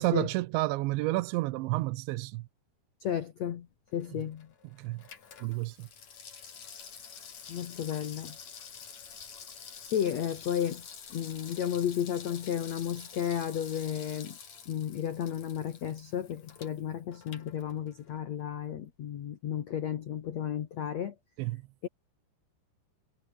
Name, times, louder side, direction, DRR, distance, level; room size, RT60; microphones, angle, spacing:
voice 1, 0.0-2.5 4.8-5.0 5.4-5.9 21.4-21.6, right 20 dB, 80° right, 3.0 m, -30 dB
voice 2, 3.0-3.7 3.9-4.5 7.5-8.4 9.8-14.4 14.6-21.1 21.8-21.9, left 9 dB, 75° left, 1.6 m, -33 dB
Water tap faucet / Sink (filling or washing), 3.9-18.2 18.5-18.6, left 7 dB, 40° left, 3.8 m, -48 dB
omnidirectional pair, 5.3 m